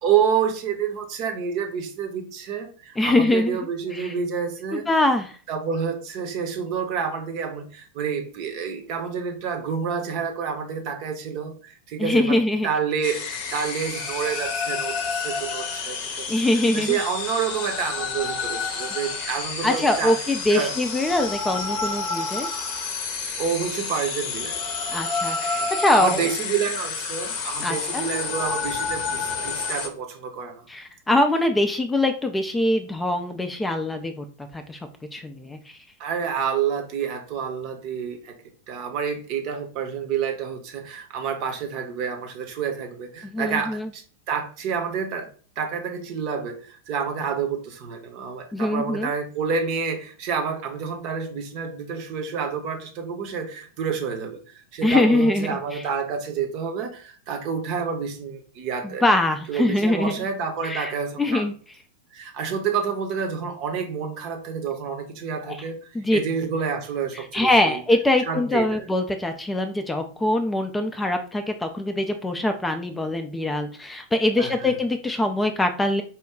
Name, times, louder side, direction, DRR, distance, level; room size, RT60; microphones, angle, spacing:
voice 1, 0.0-4.9 5.5-12.4 12.6-16.3 16.7-20.2 20.5-20.7 23.4-24.6 25.5-30.7 36.0-38.4 38.7-45.3 45.6-59.0 59.5-61.5 62.1-67.8 68.2-68.8 74.4-74.7, right 6 dB, 40° right, 5 dB, 0.8 m, -28 dB
voice 2, 3.0-3.6 3.9-4.1 4.7-5.4 12.0-12.7 16.3-17.0 19.2-19.3 19.6-22.5 24.9-26.3 27.6-28.1 30.7-34.2 34.5-34.8 35.1-35.8 43.2-43.9 48.5-49.1 54.8-55.8 58.8-60.2 60.6-60.9 61.2-61.5 65.5-65.6 65.9-66.2 67.3-76.0, left 1 dB, 10° left, 6 dB, 0.4 m, -23 dB
sound 1, 13.0-29.9, left 4 dB, 45° left, 0.7 m, -30 dB
4.4 x 2.2 x 3.6 m, 0.40 s
figure-of-eight pair, 90°, 0 cm